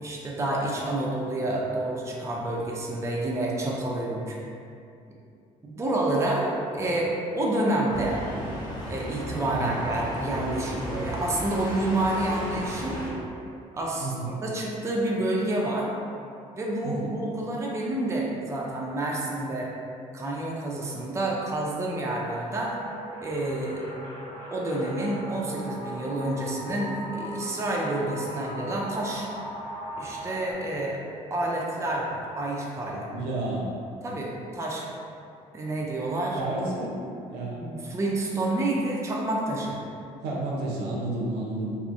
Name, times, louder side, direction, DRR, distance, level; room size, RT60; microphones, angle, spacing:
voice 1, 0.0-4.4 5.6-8.2 8.9-13.0 13.7-15.9 16.5-19.7 20.1-22.8 23.2-23.8 24.5-29.3 30.0-31.0 31.3-33.1 34.0-34.8 35.5-36.4 37.6-39.8, right 1 dB, 15° right, -3 dB, 0.4 m, -29 dB
sound 1, 7.9-13.1, left 1 dB, 25° left, 1.0 m, -35 dB
voice 2, 14.0-14.3 16.8-17.1 33.1-33.7 36.3-37.0 37.3-37.6 40.2-41.8, right 2 dB, 75° right, -4 dB, 0.6 m, -31 dB
sound 2, 22.5-30.5, equal, 55° left, 0.5 m, -38 dB
2.4 x 2.0 x 2.5 m, 2.5 s
hypercardioid pair, 60°, 17 cm